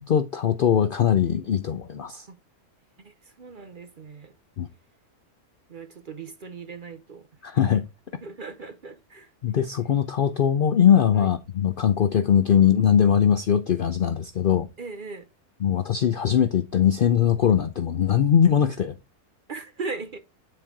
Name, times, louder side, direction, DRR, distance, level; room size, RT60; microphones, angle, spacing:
voice 1, 0.1-2.2 4.6-4.7 7.4-7.8 9.4-14.7 15.6-18.9, left 8 dB, 90° left, 0.4 m, -21 dB
voice 2, 3.0-4.3 5.7-7.3 7.5-7.8 8.2-9.3 11.1-11.3 14.8-15.3 19.5-20.2, right 4 dB, 45° right, 0.7 m, -38 dB
9.4 x 4.4 x 3.7 m
omnidirectional pair, 1.6 m